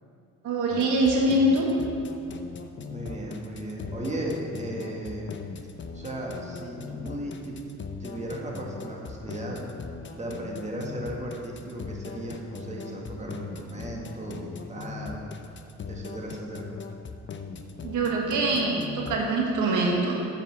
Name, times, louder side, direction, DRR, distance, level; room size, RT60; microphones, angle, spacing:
voice 1, 0.4-1.7 17.8-20.3, right 1 dB, 85° right, -1 dB, 1.5 m, -24 dB
sound 1, 0.7-19.2, left 5 dB, 40° left, 0.7 m, -39 dB
voice 2, 2.9-5.4 5.9-7.6 8.0-9.6 10.1-15.2 15.9-16.7, right 1 dB, 25° right, -2 dB, 1.8 m, -36 dB
7.9 x 7.2 x 6.0 m, 2.4 s
cardioid pair, 90°, 30 cm